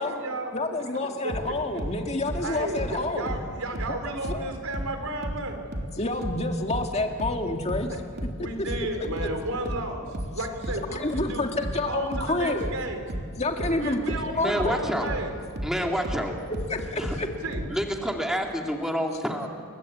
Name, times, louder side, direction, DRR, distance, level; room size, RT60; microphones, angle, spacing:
voice 1, 0.0-0.6 1.2-1.8 2.4-5.6 7.9-8.0 8.4-10.0 10.3-11.5 11.9-13.0 13.8-15.3 17.4-17.7, right 2 dB, 80° right, 5 dB, 4.2 m, -33 dB
voice 2, 0.5-3.4 3.9-4.0 4.3-4.5 6.0-7.9 8.4-8.5 10.9-12.7 13.4-15.1 16.7-17.3, left 2 dB, 30° left, 3 dB, 2.0 m, -29 dB
sound 1, 1.3-4.5 4.7-17.8, equal, 50° right, 3.4 m, -33 dB
voice 3, 14.3-15.1 15.6-16.3 17.0-17.2 17.7-19.5, equal, ahead, 1 dB, 2.4 m, -28 dB
30.0 x 23.0 x 8.6 m, 2.2 s
head